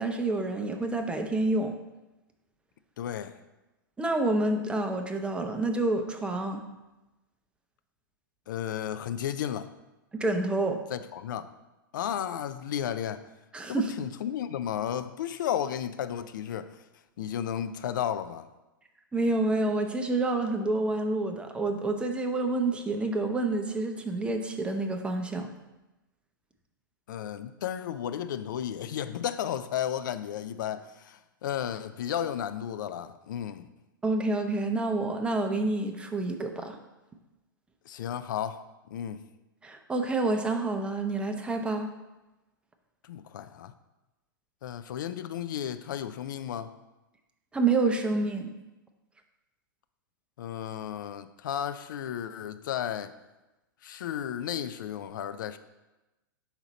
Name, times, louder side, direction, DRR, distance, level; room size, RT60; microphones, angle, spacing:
voice 1, 0.0-1.8 4.0-6.6 10.1-10.8 13.5-13.9 19.1-25.5 34.0-36.8 39.6-41.9 47.5-48.5, right 2 dB, 10° right, 5 dB, 0.6 m, -28 dB
voice 2, 3.0-3.4 8.5-9.7 10.9-11.5 11.9-13.2 13.7-16.8 17.2-18.5 27.1-33.7 37.9-39.2 43.0-43.7 44.6-46.7 50.4-53.1 53.8-55.6, left 9 dB, 65° left, 11 dB, 0.4 m, -33 dB
5.9 x 4.1 x 4.0 m, 1.0 s
hypercardioid pair, 105°, 11 cm